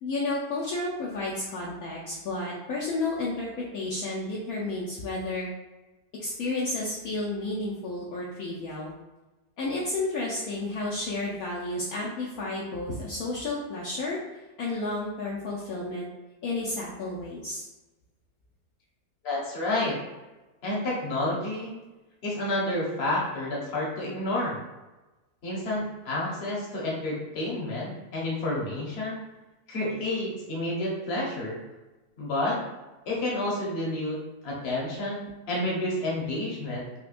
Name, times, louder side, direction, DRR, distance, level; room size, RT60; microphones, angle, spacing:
voice 1, 0.0-5.5 6.2-8.9 9.6-14.2 14.6-16.1 16.4-17.6, left 2 dB, 70° left, -5 dB, 1.0 m, -31 dB
voice 2, 19.2-20.0 20.6-21.7 22.2-24.6 25.4-29.2 29.7-31.6 32.2-32.6 33.1-34.2 34.4-36.8, left 1 dB, 45° left, -4 dB, 1.0 m, -30 dB
4.2 x 2.2 x 2.5 m, 1.1 s
omnidirectional pair, 1.8 m